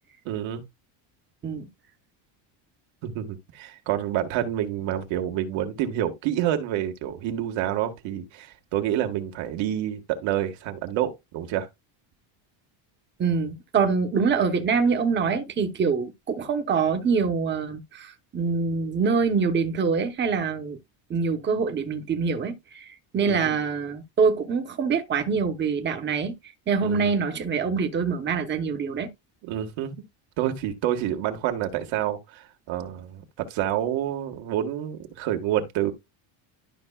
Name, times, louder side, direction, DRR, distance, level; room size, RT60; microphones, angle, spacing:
voice 1, 0.3-0.6 3.0-11.7 23.2-23.6 26.8-27.1 29.4-30.0 30.4-35.9, right 11 dB, 70° right, 1.8 m, -28 dB
voice 2, 13.2-20.8 21.1-26.3 26.7-29.1, right 5 dB, 25° right, 1.0 m, -25 dB
12.0 x 5.6 x 2.4 m
cardioid pair, 165°, 48 cm